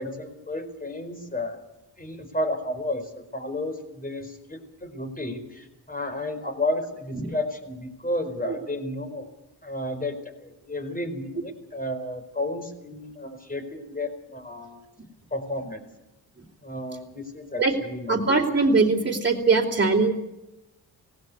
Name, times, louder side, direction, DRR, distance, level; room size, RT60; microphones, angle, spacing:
voice 1, 0.0-1.6 2.0-9.3 9.6-14.8 15.3-15.9 16.6-18.1, left 1 dB, 20° left, 6 dB, 4.6 m, -32 dB
voice 2, 18.1-20.1, right 3 dB, 25° right, -3 dB, 3.2 m, -21 dB
18.0 x 17.0 x 9.5 m, 0.93 s
cardioid pair, 70°, 40 cm